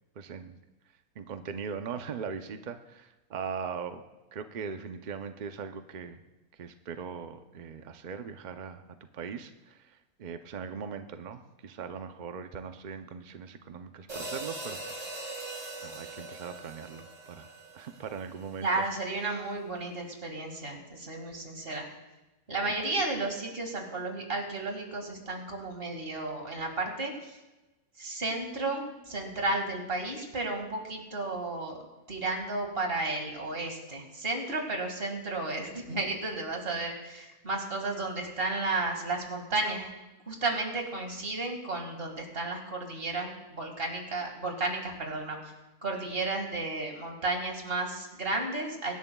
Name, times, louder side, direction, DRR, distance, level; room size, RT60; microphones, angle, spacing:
voice 1, 0.2-0.6 1.2-4.0 4.3-6.2 6.5-8.8 9.1-15.0 15.8-17.5 17.7-18.7, right 6 dB, 70° right, 8 dB, 0.4 m, -40 dB
sound 1, 14.1-18.5, right 2 dB, 85° right, 4.2 m, -41 dB
voice 2, 18.6-21.9 22.5-27.4 28.0-31.8 32.1-39.9 40.3-45.4 45.8-48.9, right 2 dB, 40° right, 2 dB, 2.1 m, -33 dB
24.0 x 11.0 x 2.3 m, 1.1 s
omnidirectional pair, 1.6 m